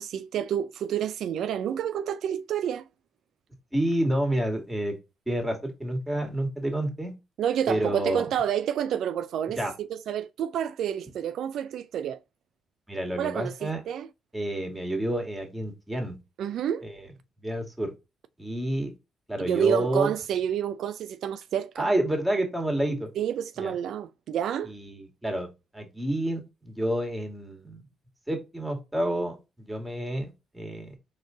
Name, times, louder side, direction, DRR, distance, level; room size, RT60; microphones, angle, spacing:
voice 1, 0.0-2.9 7.4-12.2 13.1-14.1 16.4-16.9 19.4-21.9 23.2-24.7, right 9 dB, 75° right, 0.3 m, -29 dB
voice 2, 3.7-5.0 5.3-7.1 7.7-8.3 9.6-9.7 12.9-13.8 14.3-16.2 16.8-17.1 17.4-17.9 18.4-18.9 19.3-20.1 21.8-23.1 23.6-23.7 24.6-27.8 28.3-31.0, right 1 dB, 10° right, 1.9 m, -29 dB
4.3 x 3.2 x 3.8 m
cardioid pair, 90°, 0 cm